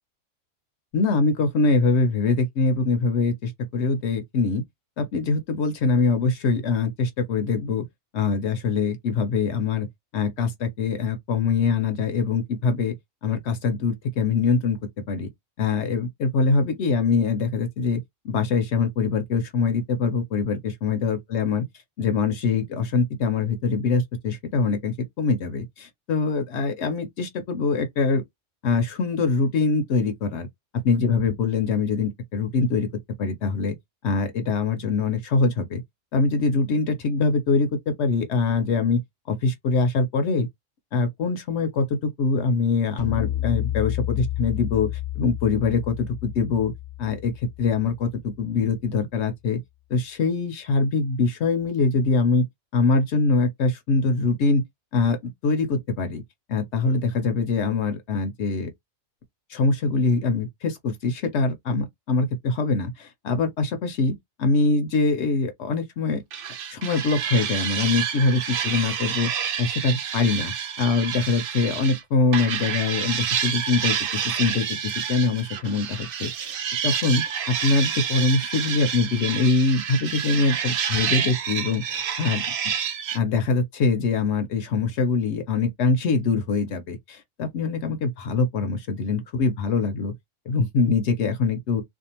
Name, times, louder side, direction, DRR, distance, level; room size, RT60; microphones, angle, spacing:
voice 1, 0.9-4.6 5.0-7.8 8.1-9.9 10.1-12.9 13.2-14.8 15.1-15.3 15.6-21.7 22.0-28.2 28.6-30.5 30.7-32.9 33.2-33.7 34.0-35.8 36.1-39.0 39.3-40.5 40.9-44.9 45.2-46.7 47.0-49.6 49.9-52.4 52.7-54.6 54.9-56.2 56.5-58.7 59.5-66.2 66.7-69.3 69.6-76.5 76.8-82.4 83.1-90.1 90.5-91.8, left 4 dB, 70° left, 0.9 m, -23 dB
sound 1, 43.0-48.3, left 13 dB, 45° left, 0.6 m, -31 dB
sound 2, 66.3-72.0 72.3-83.2, right 8 dB, 60° right, 0.7 m, -29 dB
2.6 x 2.3 x 2.8 m
omnidirectional pair, 1.2 m